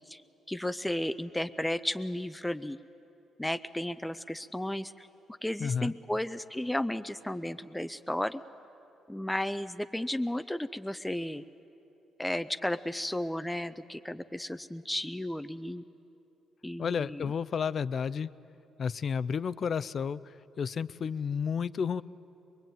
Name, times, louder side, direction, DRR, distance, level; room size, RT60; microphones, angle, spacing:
voice 1, 0.5-2.8 3.4-5.1 5.4-8.4 9.1-11.4 12.2-15.8 16.6-17.3, left 1 dB, 5° left, 10 dB, 0.6 m, -34 dB
voice 2, 5.6-5.9 16.8-18.3 18.8-22.0, left 6 dB, 50° left, 17 dB, 0.5 m, -31 dB
23.0 x 22.5 x 9.1 m, 2.9 s
cardioid pair, 90°, 0 cm